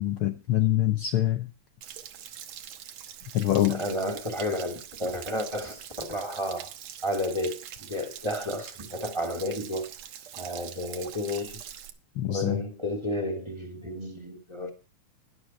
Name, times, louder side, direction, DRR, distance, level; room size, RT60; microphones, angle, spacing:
voice 1, 0.0-1.5 3.3-3.8 12.2-12.6, left 13 dB, 80° left, 1.2 m, -25 dB
Stream / Splash splatter / Trickle dribble, 1.8-11.9, right 10 dB, 70° right, 2.2 m, -43 dB
voice 2, 3.7-6.7 7.0-9.9 10.4-11.6 12.3-14.7, left 1 dB, 10° right, 2.1 m, -32 dB
11.5 x 11.0 x 4.4 m
omnidirectional pair, 3.3 m